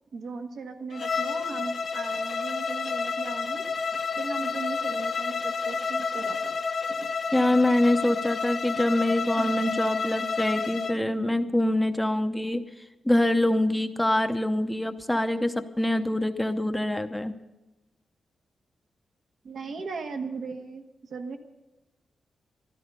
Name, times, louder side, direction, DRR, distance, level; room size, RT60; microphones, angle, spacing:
voice 1, 0.1-6.5 7.0-7.1 9.4-9.5 19.4-21.4, right 4 dB, 65° right, 4 dB, 1.5 m, -38 dB
Bowed string instrument, 0.9-11.0, left 5 dB, 50° left, 0.8 m, -30 dB
voice 2, 7.3-17.3, left 1 dB, 5° left, 8 dB, 0.8 m, -25 dB
14.5 x 12.0 x 6.8 m, 1.0 s
wide cardioid pair, 120°, 0 cm